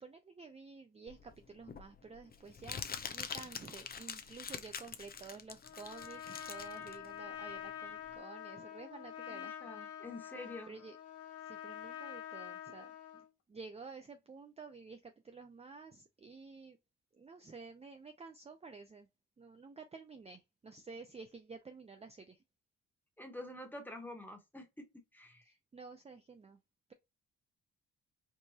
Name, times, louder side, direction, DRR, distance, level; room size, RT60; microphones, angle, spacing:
voice 1, 0.0-2.8 3.1-10.0 10.7-11.0 11.4-16.8 17.1-19.1 19.4-22.4 25.4-26.6, right 4 dB, 20° right, 0.5 m, -51 dB
Crumpling crinkling, 1.1-8.2, left 6 dB, 30° left, 0.6 m, -45 dB
Trumpet, 5.6-13.3, left 10 dB, 50° left, 1.0 m, -47 dB
voice 2, 9.3-10.7 23.2-24.8 25.1-25.4, left 1 dB, 5° left, 1.4 m, -47 dB
4.7 x 2.5 x 2.9 m
cardioid pair, 90°, 30 cm